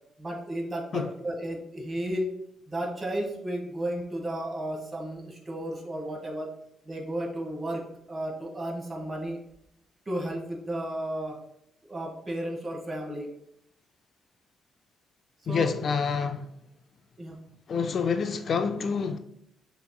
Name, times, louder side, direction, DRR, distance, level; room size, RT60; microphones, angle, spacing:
voice 1, 0.2-2.3 2.7-6.5 6.8-9.4 10.0-11.4 11.9-13.3 15.5-15.7 17.2-17.4, right 1 dB, 30° right, 1.4 m, -33 dB
voice 2, 15.5-16.5 17.7-19.2, left 5 dB, 50° left, 0.3 m, -27 dB
6.7 x 3.0 x 2.2 m
cardioid pair, 90°, 0 cm